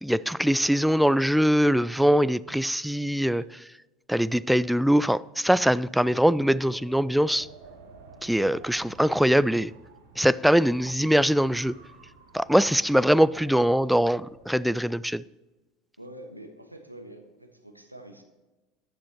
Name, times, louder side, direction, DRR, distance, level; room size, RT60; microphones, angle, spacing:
voice 1, 0.0-3.4 4.1-7.5 8.2-9.7 10.2-11.8 12.3-15.2, equal, ahead, 0.3 m, -22 dB
Wind, 6.0-14.7, right 4 dB, 70° right, 2.8 m, -51 dB
voice 2, 16.0-18.2, right 1 dB, 90° right, 1.3 m, -46 dB
15.5 x 10.0 x 3.0 m
figure-of-eight pair, 75°, 0 cm